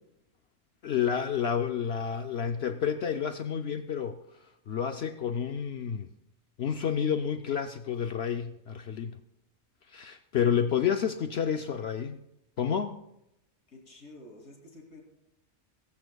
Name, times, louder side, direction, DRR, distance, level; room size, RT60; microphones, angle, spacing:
voice 1, 0.8-4.2 4.7-6.1 6.6-9.2 9.9-12.2 12.6-13.0, left 8 dB, 60° left, 7 dB, 0.7 m, -30 dB
voice 2, 13.7-15.0, left 1 dB, 80° left, 0 dB, 3.4 m, -50 dB
21.0 x 14.0 x 2.3 m, 0.83 s
omnidirectional pair, 1.5 m